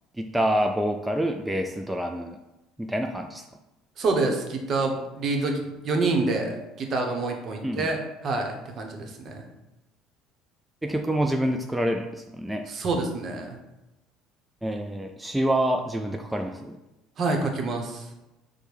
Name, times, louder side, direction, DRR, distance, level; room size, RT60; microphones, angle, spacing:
voice 1, 0.2-2.4 2.8-3.5 7.6-7.9 10.8-12.7 14.6-16.8, right 1 dB, 5° right, 3 dB, 0.3 m, -27 dB
voice 2, 4.0-9.5 12.7-13.6 17.2-18.1, right 3 dB, 45° right, 2 dB, 0.9 m, -27 dB
5.0 x 2.1 x 4.7 m, 0.98 s
supercardioid pair, 95°, 0 cm